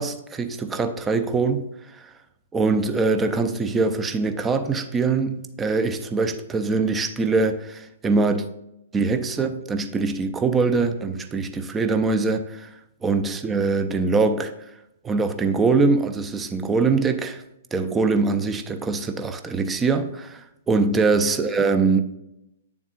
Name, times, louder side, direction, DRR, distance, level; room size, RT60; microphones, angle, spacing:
voice 1, 0.0-2.1 2.5-8.5 8.9-14.5 15.0-17.4 17.7-22.0, right 4 dB, 15° right, 0.5 m, -23 dB
9.0 x 7.1 x 2.4 m
figure-of-eight pair, 115°, 0 cm